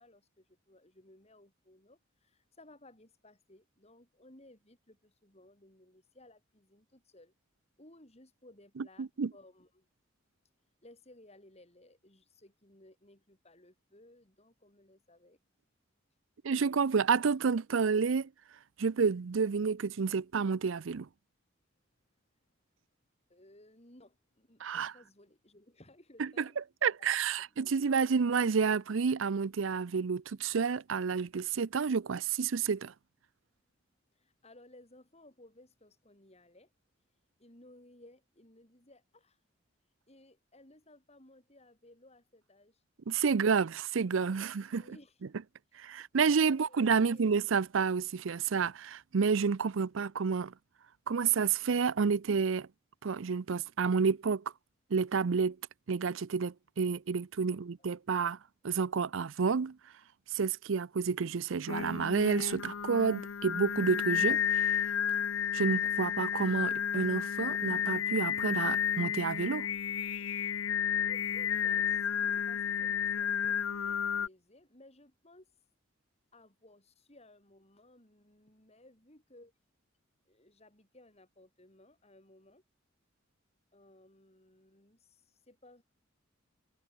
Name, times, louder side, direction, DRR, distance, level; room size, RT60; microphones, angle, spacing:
voice 1, 0.0-7.3 7.8-9.9 10.8-15.4 23.3-26.6 27.3-27.7 34.1-36.7 37.1-39.4 40.1-42.8 44.3-44.4 44.7-45.2 45.9-47.3 57.5-57.9 70.1-75.7 76.3-79.5 80.3-82.6 83.7-85.8, left 1 dB, 30° left, 7.2 m, -60 dB
voice 2, 8.8-9.3 16.4-18.3 18.8-21.1 24.6-24.9 26.2-26.4 26.8-32.9 43.1-44.8 45.8-50.5 51.1-52.7 53.0-54.4 54.9-55.6 55.9-58.4 58.6-59.8 60.3-64.7 65.5-69.7, right 5 dB, 70° right, 0.5 m, -30 dB
Singing, 61.7-74.3, left 8 dB, 80° left, 0.7 m, -32 dB
head